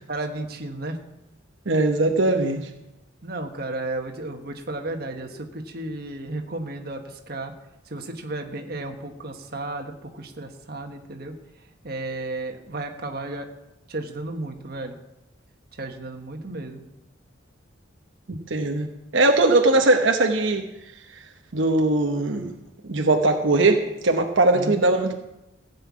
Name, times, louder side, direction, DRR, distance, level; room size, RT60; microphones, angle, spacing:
voice 1, 0.1-1.0 3.2-7.5 7.9-11.3 11.8-13.5 13.9-14.9 15.8-16.8 24.5-24.8, right 2 dB, 55° right, 4 dB, 1.4 m, -33 dB
voice 2, 1.7-2.7 18.3-18.9 19.1-20.7 21.5-22.5 22.9-25.1, right 2 dB, 80° right, 3 dB, 1.1 m, -20 dB
16.0 x 5.6 x 8.5 m, 0.92 s
head